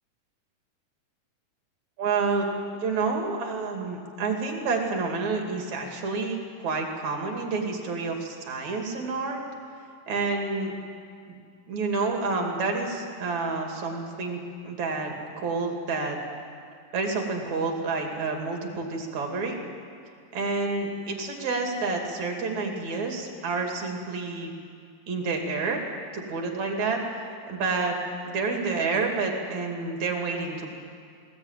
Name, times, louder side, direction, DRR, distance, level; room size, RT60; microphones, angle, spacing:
voice 1, 2.0-2.5 2.7-9.4 10.1-10.7 11.3-11.4 11.7-16.2 16.9-19.6 20.3-24.5 25.1-25.8 26.1-27.0 27.5-28.0 28.3-30.8, right 4 dB, 60° right, 2 dB, 3.8 m, -29 dB
20.5 x 18.0 x 9.0 m, 2.3 s
omnidirectional pair, 3.8 m